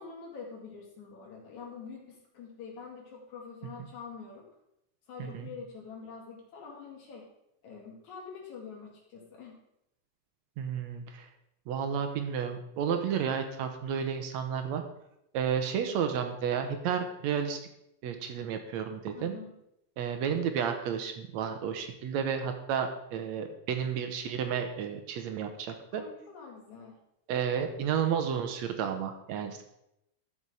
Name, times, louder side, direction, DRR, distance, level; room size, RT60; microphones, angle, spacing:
voice 1, 0.0-4.5 5.1-7.3 7.6-9.6 19.2-19.6 25.9-27.0, left 5 dB, 65° left, -2 dB, 3.7 m, -46 dB
voice 2, 5.2-5.5 10.6-11.3 11.7-14.8 15.3-17.6 18.0-19.3 20.0-26.0 27.3-29.6, right 7 dB, 70° right, 6 dB, 1.9 m, -32 dB
13.0 x 5.6 x 4.8 m, 0.83 s
omnidirectional pair, 3.7 m